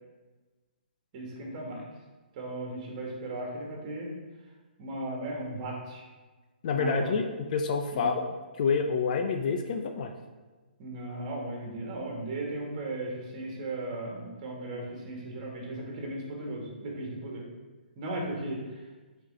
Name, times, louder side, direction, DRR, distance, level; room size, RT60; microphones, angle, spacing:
voice 1, 1.1-1.8 2.3-4.1 4.8-6.0 6.7-7.1 7.9-8.1 10.8-17.5 18.0-18.8, right 2 dB, 40° right, -2 dB, 2.2 m, -36 dB
voice 2, 6.6-8.2 8.6-10.1 14.8-14.9, left 5 dB, 50° left, 5 dB, 0.6 m, -28 dB
8.0 x 4.5 x 3.8 m, 1.3 s
hypercardioid pair, 140°, 6 cm